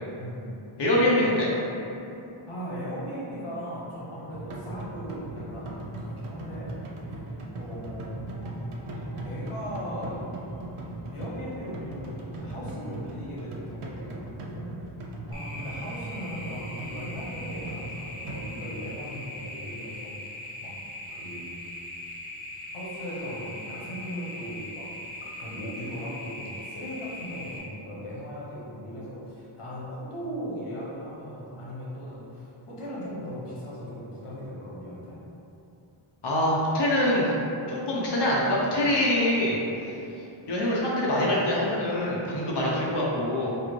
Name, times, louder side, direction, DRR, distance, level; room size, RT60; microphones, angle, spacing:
voice 1, 0.2-0.5 2.5-8.2 8.9-10.2 11.1-15.0 15.3-20.2 20.6-20.7 21.1-21.5 22.7-24.9 25.4-35.2, equal, 90° left, -7 dB, 1.0 m, -38 dB
voice 2, 0.8-1.5 36.2-37.3 37.7-39.6 40.5-43.5, left 1 dB, 55° left, -5 dB, 0.8 m, -24 dB
sound 1, 4.3-18.5, right 2 dB, 85° right, 0.6 m, -38 dB
sound 2, 15.3-27.6, left 1 dB, 30° right, 1.3 m, -40 dB
4.7 x 2.5 x 3.1 m, 2.9 s
wide cardioid pair, 45°, 49 cm